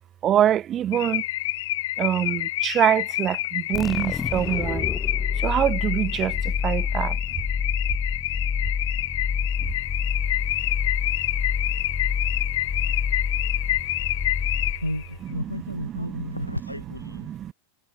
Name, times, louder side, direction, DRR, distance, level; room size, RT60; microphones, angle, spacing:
voice 1, 0.2-1.2 2.0-4.9 5.4-7.2 17.3-17.5, right 10 dB, 30° right, 0.3 m, -24 dB
Car / Alarm, 0.9-15.1, left 16 dB, 55° left, 0.3 m, -28 dB
sound 1, 3.7-15.2, left 5 dB, 15° left, 0.9 m, -28 dB
voice 2, 14.8-17.3, left 1 dB, 90° left, 1.2 m, -32 dB
figure-of-eight pair, 90°, 0 cm